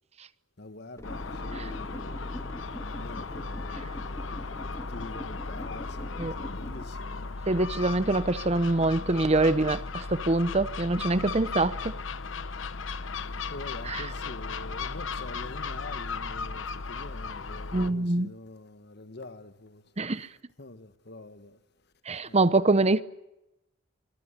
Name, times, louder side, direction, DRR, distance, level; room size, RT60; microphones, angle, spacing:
voice 1, 0.6-2.4 2.8-7.4 13.1-19.8 20.6-21.6 22.2-22.6, left 2 dB, 55° left, 1.6 m, -45 dB
Gull seagull, 1.0-17.9, left 4 dB, 75° left, 1.0 m, -36 dB
sound 1, 1.0-6.9, equal, 15° left, 1.6 m, -43 dB
voice 2, 7.5-11.9 13.9-14.1 17.7-18.3 20.0-20.3 22.1-23.0, right 2 dB, 35° right, 0.8 m, -25 dB
24.5 x 23.5 x 8.4 m
head